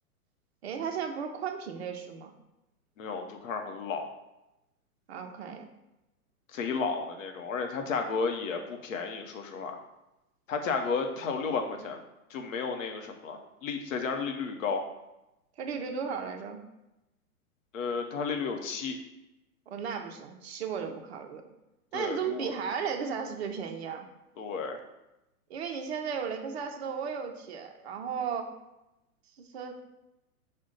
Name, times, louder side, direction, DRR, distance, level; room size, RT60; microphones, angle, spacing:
voice 1, 0.6-2.3 5.1-5.7 15.6-16.6 19.7-21.4 21.9-24.1 25.5-28.5 29.4-29.8, right 6 dB, 45° right, 4 dB, 0.5 m, -35 dB
voice 2, 3.0-4.1 6.5-9.8 10.5-12.0 12.3-14.8 17.7-19.0 21.9-22.5 24.4-24.8, left 5 dB, 60° left, 4 dB, 0.7 m, -33 dB
5.0 x 2.2 x 3.7 m, 0.94 s
hypercardioid pair, 155°, 46 cm